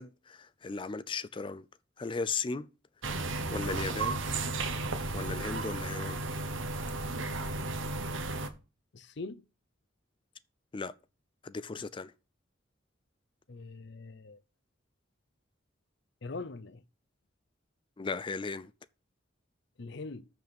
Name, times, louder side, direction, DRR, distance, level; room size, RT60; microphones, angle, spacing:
voice 1, 0.0-1.7 2.0-2.7 3.2-4.2 5.1-6.2 10.7-10.9 11.4-12.1 18.0-18.7, left 4 dB, 25° left, 0.4 m, -36 dB
sound 1, 3.0-8.5, right 3 dB, 80° right, 1.2 m, -34 dB
voice 2, 8.9-9.4 13.5-14.4 16.2-16.8 19.8-20.3, left 3 dB, 60° left, 0.7 m, -42 dB
6.9 x 6.0 x 5.9 m
head